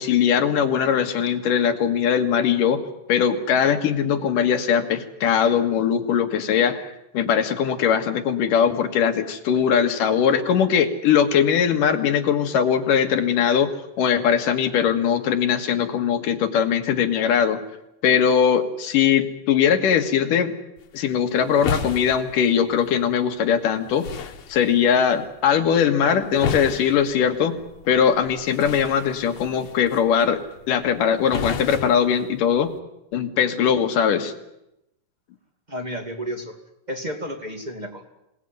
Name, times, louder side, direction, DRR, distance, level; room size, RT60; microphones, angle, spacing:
voice 1, 0.0-2.8 3.1-13.7 14.0-17.6 18.0-20.5 20.9-27.6 27.9-30.4 30.7-32.7 33.1-34.3, left 8 dB, 90° left, 7 dB, 3.3 m, -20 dB
sound 1, 20.8-32.8, left 6 dB, 60° left, 2.6 m, -35 dB
voice 2, 35.7-36.5 36.9-38.0, equal, 15° right, 4 dB, 2.2 m, -31 dB
26.0 x 19.0 x 9.2 m, 0.88 s
omnidirectional pair, 3.7 m